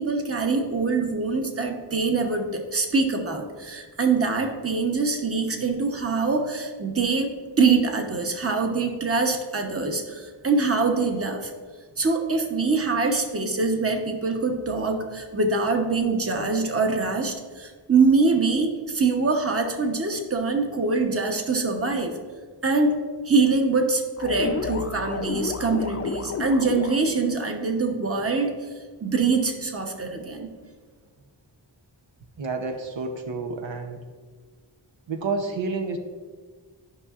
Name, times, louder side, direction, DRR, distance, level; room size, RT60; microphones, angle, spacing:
voice 1, 0.0-7.3 7.6-11.5 12.0-22.2 22.6-23.0 23.2-28.5 29.0-30.5, right 4 dB, 30° right, 4 dB, 0.9 m, -24 dB
sound 1, 24.2-27.3, left 4 dB, 35° left, 0.5 m, -31 dB
voice 2, 32.4-34.0 35.1-36.0, right 4 dB, 85° right, 5 dB, 0.8 m, -29 dB
13.0 x 5.5 x 2.4 m, 1.5 s
wide cardioid pair, 75°, 44 cm